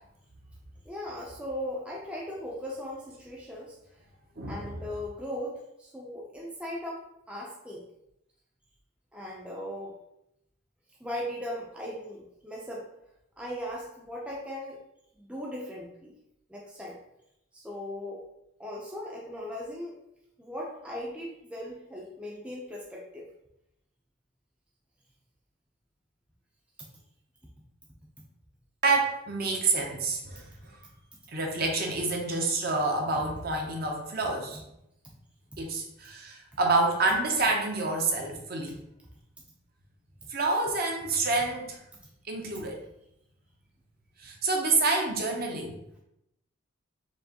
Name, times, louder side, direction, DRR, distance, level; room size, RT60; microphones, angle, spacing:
voice 1, 0.9-3.8 4.5-7.8 9.1-10.0 11.0-12.9 13.4-14.8 15.2-16.1 16.5-17.0 17.5-18.2 18.6-20.0 20.4-23.3, left 1 dB, 5° right, -3 dB, 0.4 m, -38 dB
voice 2, 4.4-4.7 28.8-30.5 31.3-34.6 35.6-38.8 40.3-41.8 42.2-42.8 44.2-45.8, right 3 dB, 45° right, 1 dB, 0.7 m, -28 dB
4.5 x 3.0 x 2.8 m, 0.81 s
head